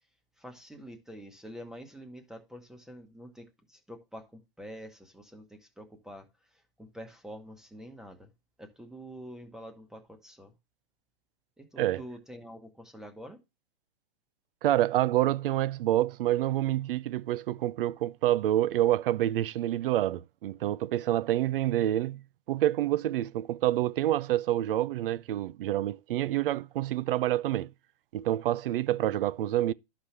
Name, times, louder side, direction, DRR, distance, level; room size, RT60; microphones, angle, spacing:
voice 1, 0.4-8.3 8.6-10.5 11.6-13.4, equal, ahead, 1.0 m, -47 dB
voice 2, 14.6-22.2 22.5-27.7 28.1-29.7, right 13 dB, 70° right, 0.5 m, -27 dB
11.0 x 5.9 x 3.2 m
hypercardioid pair, 150°, 29 cm